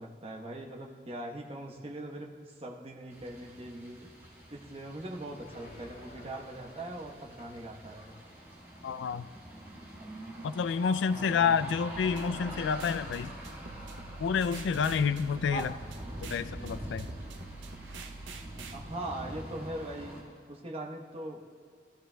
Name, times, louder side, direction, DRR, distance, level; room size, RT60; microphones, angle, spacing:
voice 1, 0.0-4.0 4.5-8.1 11.0-11.6 15.5-15.8 18.7-20.1 20.5-21.4, right 1 dB, 30° right, 0 dB, 1.0 m, -41 dB
sound 1, 3.1-20.2, right 1 dB, 15° right, 2.1 m, -45 dB
sound 2, 5.4-9.2, left 1 dB, 55° left, 2.5 m, -54 dB
voice 2, 8.8-9.3 10.4-13.3 14.2-15.7 16.2-17.1, left 6 dB, 75° left, 14 dB, 0.3 m, -29 dB
sound 3, 11.9-18.8, right 3 dB, 90° right, 0.7 m, -46 dB
18.5 x 13.0 x 2.2 m, 2.2 s
head